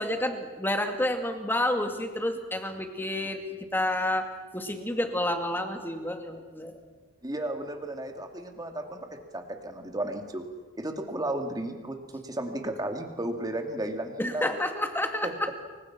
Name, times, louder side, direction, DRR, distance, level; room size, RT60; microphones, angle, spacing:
voice 1, 0.0-6.8 14.2-15.6, left 1 dB, 10° left, 5 dB, 2.3 m, -30 dB
voice 2, 7.2-10.4 10.7-14.6 15.2-15.3, right 1 dB, 20° right, 4 dB, 2.5 m, -34 dB
29.5 x 24.5 x 6.1 m, 1.4 s
head